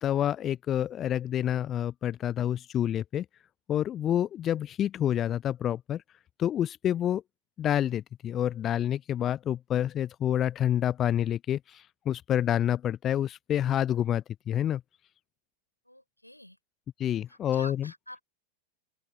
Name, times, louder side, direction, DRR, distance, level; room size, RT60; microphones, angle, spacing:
voice 1, 0.0-3.2 3.7-6.0 6.4-7.2 7.6-14.8 17.0-17.9, left 10 dB, 30° left, 0.6 m, -28 dB
voice 2, 15.9-16.6 17.3-18.2, left 1 dB, 90° left, 5.0 m, -46 dB
open air
figure-of-eight pair, 90°, 0 cm